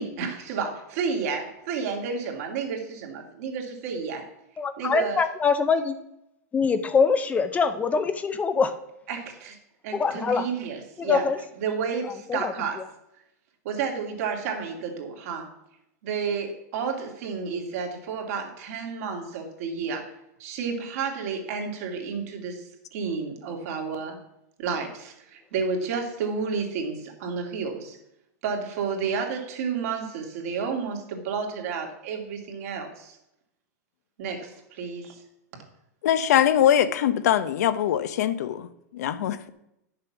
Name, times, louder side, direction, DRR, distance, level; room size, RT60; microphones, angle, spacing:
voice 1, 0.0-4.3 4.8-5.2 9.1-9.6 9.8-11.3 11.6-12.8 13.6-15.5 16.0-20.1 20.4-22.6 22.9-24.2 24.6-28.0 28.4-33.2 34.2-35.2 35.5-35.6, right 5 dB, 60° right, 3 dB, 2.4 m, -31 dB
voice 2, 4.6-6.0 6.5-8.7 9.9-10.5 11.0-11.4 12.3-12.5, left 5 dB, 15° left, 10 dB, 0.6 m, -23 dB
voice 3, 36.0-39.5, left 10 dB, 75° left, 13 dB, 0.8 m, -22 dB
9.9 x 6.7 x 6.0 m, 0.83 s
supercardioid pair, 140°, 9 cm